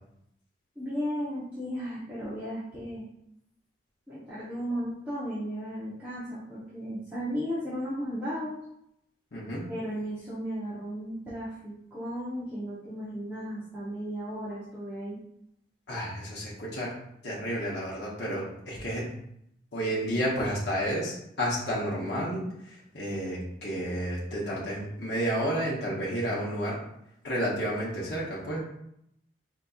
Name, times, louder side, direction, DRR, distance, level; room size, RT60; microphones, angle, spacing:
voice 1, 0.8-3.0 4.1-8.6 9.7-15.2, equal, 10° right, -12 dB, 0.8 m, -35 dB
voice 2, 9.3-9.7 15.9-16.9 17.2-19.0 19.7-26.8 27.2-28.6, equal, 60° left, -6 dB, 0.9 m, -31 dB
4.0 x 2.9 x 2.4 m, 0.77 s
head